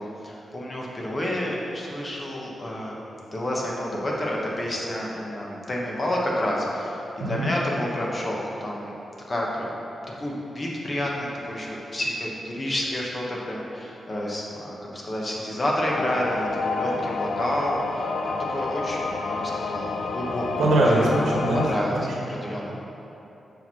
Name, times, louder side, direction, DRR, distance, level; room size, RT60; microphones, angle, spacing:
voice 1, 0.0-2.9 3.3-8.9 9.3-9.7 10.2-20.4 20.9-21.1 21.5-22.7, left 1 dB, 30° left, -3 dB, 1.2 m, -29 dB
sound 1, 15.9-21.7, left 3 dB, 80° left, 0.5 m, -29 dB
voice 2, 20.6-21.6 21.9-22.1, right 1 dB, 80° right, -4 dB, 1.4 m, -21 dB
6.9 x 4.6 x 5.7 m, 2.9 s
wide cardioid pair, 135°, 0 cm